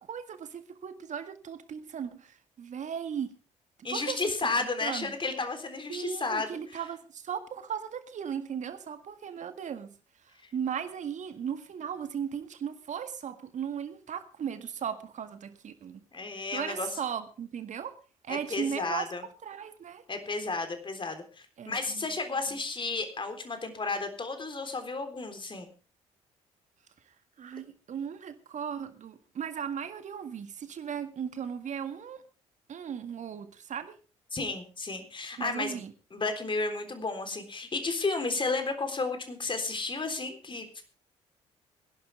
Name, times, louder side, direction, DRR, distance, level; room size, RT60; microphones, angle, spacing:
voice 1, 0.1-3.3 3.8-4.2 4.8-5.1 5.9-9.9 10.5-16.0 16.5-18.0 18.2-19.1 19.4-20.0 21.6-22.1 27.4-32.2 32.7-34.0 35.4-35.9, right 8 dB, 50° right, 1.8 m, -37 dB
voice 2, 3.8-6.8 16.1-16.9 18.3-19.2 20.1-25.7 34.3-35.8 36.1-40.8, left 3 dB, 30° left, 3.7 m, -33 dB
21.5 x 11.5 x 3.4 m
figure-of-eight pair, 45°, 16 cm